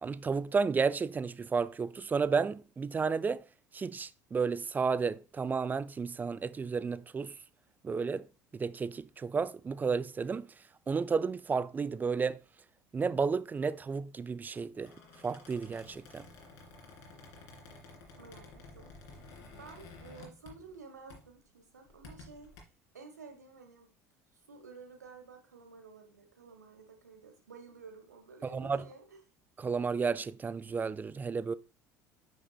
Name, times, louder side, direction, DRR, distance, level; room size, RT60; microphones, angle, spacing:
voice 1, 0.0-3.4 3.7-7.3 7.8-8.3 8.5-10.5 10.9-12.4 12.9-14.9 15.2-16.2 28.5-28.8 29.6-31.5, right 5 dB, 20° right, 0.4 m, -32 dB
Squeak, 14.7-20.8 21.1-21.4 21.9-22.6, left 3 dB, 60° left, 2.5 m, -52 dB
voice 2, 18.2-19.2 19.6-22.5 22.9-23.9 24.5-29.2, right 4 dB, 80° right, 1.6 m, -52 dB
8.9 x 5.9 x 2.4 m
figure-of-eight pair, 65°, 9 cm